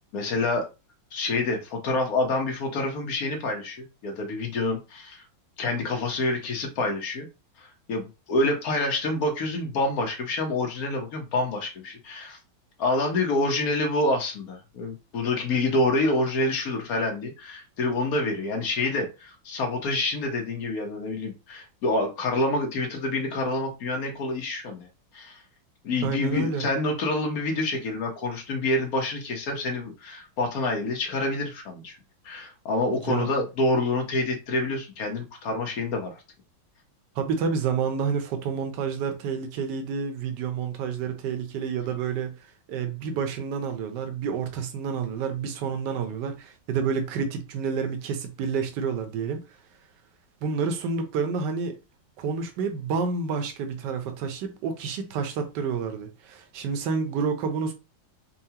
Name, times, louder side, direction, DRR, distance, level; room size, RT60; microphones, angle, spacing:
voice 1, 0.1-0.7 1.1-5.2 5.6-7.3 7.6-12.4 12.8-24.9 25.1-25.4 25.8-32.0 32.2-36.2, left 2 dB, 55° left, 1.2 m, -27 dB
voice 2, 26.0-26.7 33.0-33.3 37.2-42.3 42.7-49.4 50.4-51.8 52.2-57.7, right 5 dB, 65° right, 1.3 m, -29 dB
5.6 x 2.2 x 2.8 m
omnidirectional pair, 2.1 m